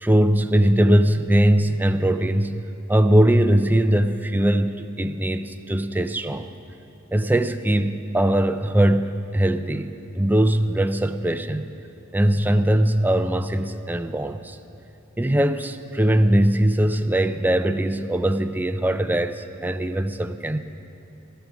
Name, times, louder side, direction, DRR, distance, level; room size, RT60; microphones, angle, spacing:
voice 1, 0.0-2.6 2.9-6.5 7.1-11.7 12.1-14.6 15.2-20.6, right 1 dB, 10° right, 9 dB, 0.4 m, -21 dB
16.0 x 12.5 x 6.1 m, 2.8 s
head